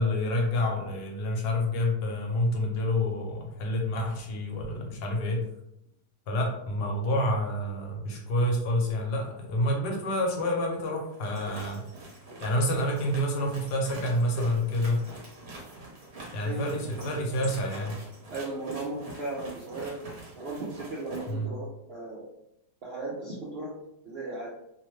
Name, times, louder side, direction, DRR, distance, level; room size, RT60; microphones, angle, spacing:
voice 1, 0.0-5.4 6.3-11.8 12.4-15.1 16.3-18.0 21.3-21.5, left 1 dB, 80° left, 1 dB, 1.3 m, -28 dB
sound 1, 11.1-21.3, right 2 dB, 50° right, 0.9 m, -44 dB
voice 2, 16.4-17.2 18.3-20.0 20.4-22.2 22.8-23.7 24.0-24.5, right 2 dB, 70° right, -5 dB, 0.5 m, -36 dB
2.9 x 2.1 x 3.1 m, 0.80 s
omnidirectional pair, 1.8 m